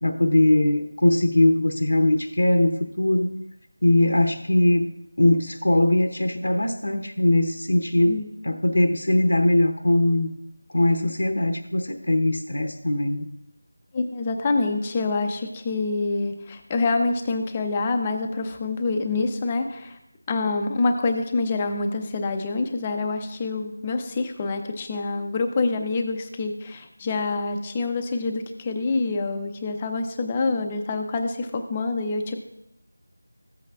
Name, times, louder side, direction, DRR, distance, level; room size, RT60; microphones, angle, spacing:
voice 1, 0.0-3.4 3.8-4.9 5.2-10.3 10.7-13.3, left 1 dB, 90° left, 5 dB, 0.8 m, -21 dB
voice 2, 13.9-20.0 20.3-32.4, left 3 dB, 15° left, 5 dB, 0.5 m, -26 dB
14.5 x 7.9 x 2.4 m, 0.85 s
figure-of-eight pair, 175°, 0 cm